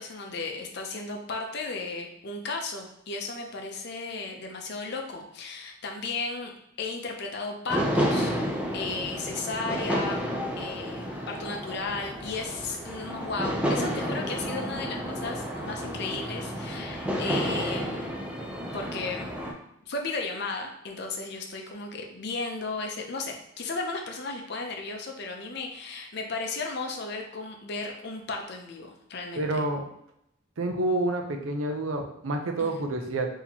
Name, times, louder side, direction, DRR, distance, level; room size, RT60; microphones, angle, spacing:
voice 1, 0.0-6.5 6.8-8.3 8.7-10.3 10.6-18.1 18.7-19.3 19.9-29.6 32.6-32.8, left 3 dB, 50° left, 2 dB, 0.6 m, -35 dB
sound 1, 7.7-19.5, equal, 5° right, 0.4 m, -31 dB
voice 2, 29.4-29.9 30.6-33.3, right 2 dB, 75° right, 4 dB, 0.6 m, -28 dB
4.1 x 2.8 x 2.8 m, 0.76 s
head